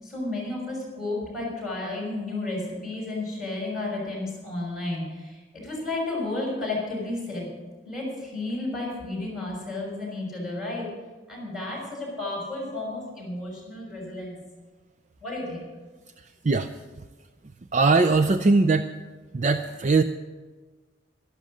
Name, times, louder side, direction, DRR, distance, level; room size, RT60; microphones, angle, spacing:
voice 1, 0.0-7.5 7.8-10.9 11.3-14.4 15.2-15.6, left 2 dB, ahead, -4 dB, 5.9 m, -32 dB
voice 2, 16.2-16.7 17.7-18.9 19.3-20.0, right 3 dB, 40° right, 9 dB, 0.4 m, -21 dB
12.5 x 12.0 x 6.3 m, 1.3 s
head